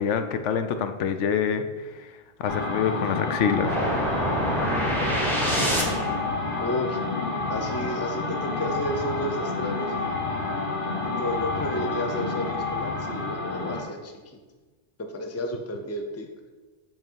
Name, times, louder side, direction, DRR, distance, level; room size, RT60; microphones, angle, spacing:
voice 1, 0.0-1.9 2.4-3.8, left 7 dB, 85° left, 8 dB, 0.9 m, -26 dB
sound 1, 2.5-13.9, left 3 dB, 50° left, 1.2 m, -29 dB
sound 2, 3.6-6.3, right 1 dB, ahead, 1.0 m, -26 dB
voice 2, 6.6-7.0 7.5-10.2 11.2-14.1 15.1-16.3, left 1 dB, 20° left, 4 dB, 0.5 m, -31 dB
7.6 x 3.7 x 4.6 m, 1.3 s
omnidirectional pair, 1.2 m